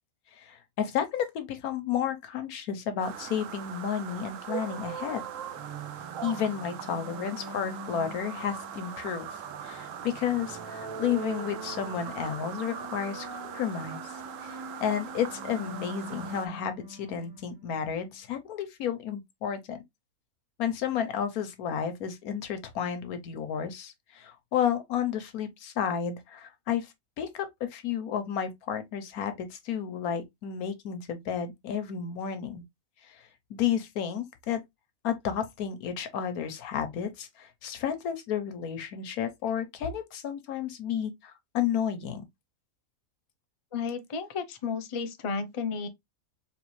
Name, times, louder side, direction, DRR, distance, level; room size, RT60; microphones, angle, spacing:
voice 1, 0.3-5.3 6.2-9.3 9.6-14.1 14.4-19.8 20.6-32.6 33.0-34.6 35.0-42.2, left 8 dB, 90° left, 1.3 m, -32 dB
sound 1, 3.0-16.5, right 8 dB, 70° right, 0.9 m, -41 dB
sound 2, 5.5-18.1, right 2 dB, 20° right, 0.7 m, -44 dB
voice 2, 43.7-45.9, left 5 dB, 50° left, 0.3 m, -33 dB
4.2 x 3.2 x 3.1 m
omnidirectional pair, 1.5 m